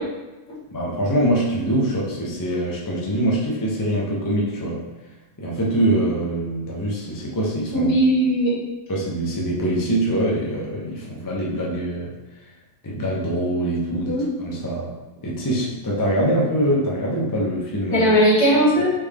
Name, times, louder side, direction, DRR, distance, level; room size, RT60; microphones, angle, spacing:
voice 1, 0.7-4.8 5.4-8.0 8.9-12.1 12.8-14.9 15.2-18.1, right 1 dB, 25° left, -5 dB, 0.4 m, -24 dB
voice 2, 7.7-8.6 13.9-14.3 17.9-18.9, equal, 65° left, -5 dB, 1.9 m, -18 dB
4.3 x 3.4 x 3.6 m, 1.1 s
omnidirectional pair, 2.0 m